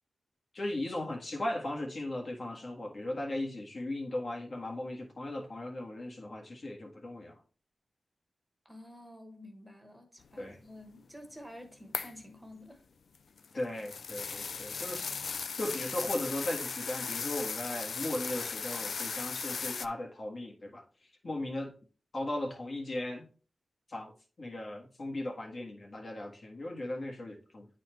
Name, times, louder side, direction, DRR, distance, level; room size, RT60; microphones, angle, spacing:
voice 1, 0.5-7.4 10.4-10.6 13.5-15.2 15.6-20.9 21.2-21.7 22.1-23.3 23.9-27.7, left 1 dB, 55° left, 1.5 m, -37 dB
voice 2, 8.6-12.8, left 1 dB, 5° right, 1.1 m, -50 dB
sound 1, 11.9-12.2 13.2-19.9, left 5 dB, 70° left, 0.4 m, -37 dB
9.1 x 4.2 x 3.1 m
wide cardioid pair, 95°, 0 cm